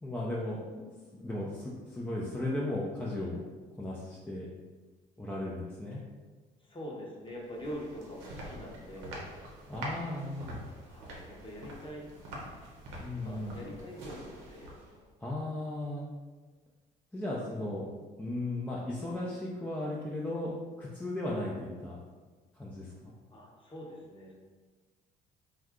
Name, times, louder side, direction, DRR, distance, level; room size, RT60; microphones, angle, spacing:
voice 1, 0.0-3.5 3.8-4.5 5.2-6.0 9.7-10.6 13.0-13.6 15.2-16.1 17.1-17.9 18.2-20.5 20.8-22.0 22.6-23.1, left 1 dB, 10° left, -5 dB, 0.5 m, -36 dB
voice 2, 6.6-9.2 10.9-12.1 13.2-14.7 23.3-24.3, equal, 25° left, -3 dB, 0.9 m, -44 dB
sound 1, 7.3-15.1, right 1 dB, 90° right, 0.7 m, -45 dB
2.6 x 2.3 x 3.6 m, 1.4 s
supercardioid pair, 75°, 19 cm